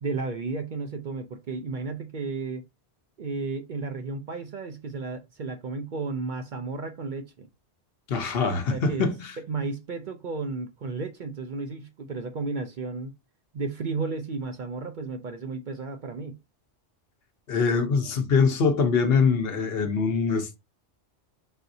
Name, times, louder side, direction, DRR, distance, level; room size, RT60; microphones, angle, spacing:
voice 1, 0.0-2.6 3.2-7.5 8.7-9.1 9.5-13.1 13.5-16.4, right 4 dB, 55° right, 0.6 m, -33 dB
voice 2, 8.1-9.3 17.5-20.6, left 5 dB, 60° left, 0.9 m, -23 dB
4.1 x 3.9 x 2.6 m
omnidirectional pair, 1.2 m